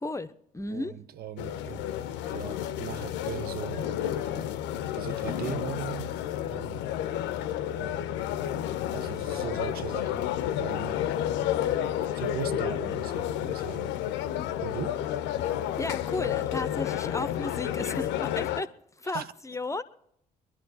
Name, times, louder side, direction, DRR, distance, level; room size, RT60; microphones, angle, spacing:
voice 1, 0.0-1.0 15.8-18.7 19.0-19.8, left 2 dB, 15° left, 0.8 m, -34 dB
voice 2, 0.7-1.8 2.3-3.9 4.3-4.5 4.9-6.1 6.5-6.8 7.8-8.0 8.9-10.3 10.6-11.0 12.0-13.9 14.6-15.0 19.0-19.3, right 10 dB, 50° right, 0.5 m, -38 dB
sound 1, 1.4-18.6, left 11 dB, 60° left, 0.7 m, -31 dB
22.5 x 11.0 x 4.2 m
figure-of-eight pair, 45°, 20 cm